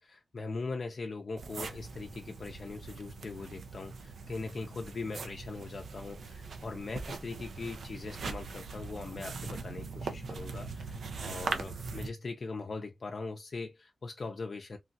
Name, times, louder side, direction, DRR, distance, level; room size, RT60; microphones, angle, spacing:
voice 1, 0.0-14.8, left 3 dB, 45° left, 0.5 m, -41 dB
sound 1, 1.4-12.1, right 4 dB, 70° right, 0.5 m, -41 dB
3.1 x 2.3 x 2.5 m
wide cardioid pair, 125°, 0 cm